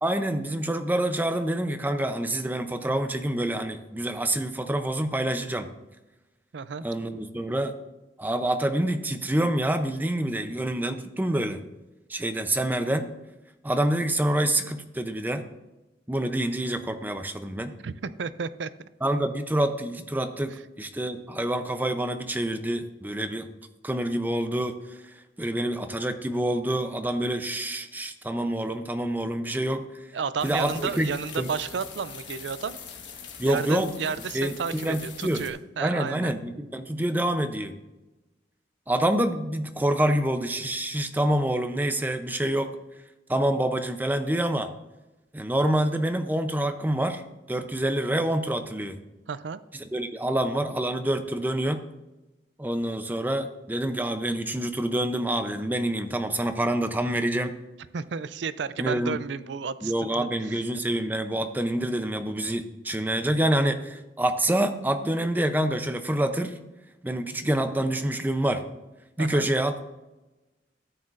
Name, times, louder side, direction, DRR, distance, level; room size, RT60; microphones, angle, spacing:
voice 1, 0.0-5.7 6.8-7.8 8.2-11.6 12.1-13.1 13.6-15.4 16.1-17.7 19.0-23.5 23.8-29.8 30.4-31.1 31.4-31.5 33.4-33.9 34.3-35.4 35.8-37.8 38.9-42.8 43.3-44.7 45.3-47.2 47.5-49.0 49.7-51.8 52.6-57.5 58.8-59.2 59.8-66.6 67.0-68.6 69.2-69.8, right 1 dB, 10° right, 8 dB, 0.6 m, -27 dB
voice 2, 6.5-6.8 17.8-18.9 30.1-32.8 33.5-36.3 49.3-49.6 57.9-60.6 69.2-69.5, right 6 dB, 80° right, 15 dB, 0.4 m, -32 dB
sound 1, 30.4-35.5, left 6 dB, 85° left, 1.4 m, -43 dB
13.0 x 8.5 x 2.5 m, 1.0 s
head